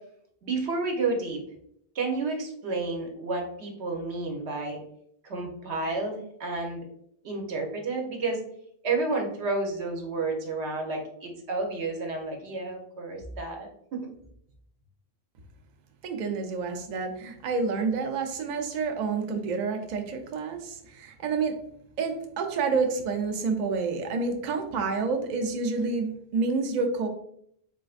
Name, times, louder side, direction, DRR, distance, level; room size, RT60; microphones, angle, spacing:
voice 1, 0.4-1.4 1.9-4.8 5.2-6.8 7.2-8.4 8.8-13.7 13.9-14.0, right 3 dB, 90° right, 2 dB, 1.1 m, -30 dB
voice 2, 16.0-21.6 22.0-27.1, right 4 dB, 55° right, 5 dB, 0.5 m, -29 dB
3.8 x 2.5 x 2.4 m, 0.69 s
omnidirectional pair, 1.1 m